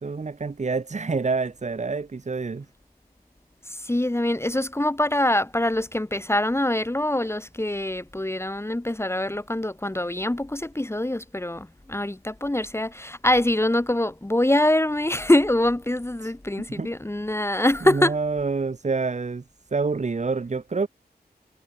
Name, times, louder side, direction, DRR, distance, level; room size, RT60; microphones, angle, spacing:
voice 1, 0.0-2.7 16.2-16.3 16.7-16.9 17.8-19.4 19.7-20.9, right 4 dB, 45° right, 1.1 m, -27 dB
voice 2, 3.7-18.1, left 1 dB, 15° left, 1.6 m, -24 dB
wide cardioid pair, 100°, 17 cm